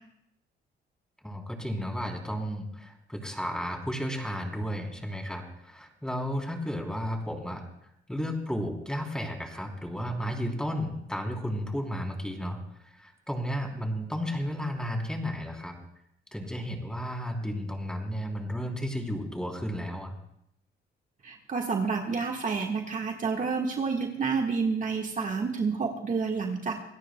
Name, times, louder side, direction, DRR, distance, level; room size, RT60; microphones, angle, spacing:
voice 1, 1.2-7.7 8.1-15.8 16.3-20.1, equal, 5° left, 1 dB, 3.3 m, -33 dB
voice 2, 21.2-26.8, right 5 dB, 40° right, 2 dB, 1.6 m, -29 dB
26.5 x 17.0 x 2.2 m, 0.76 s
cardioid pair, 90°, 20 cm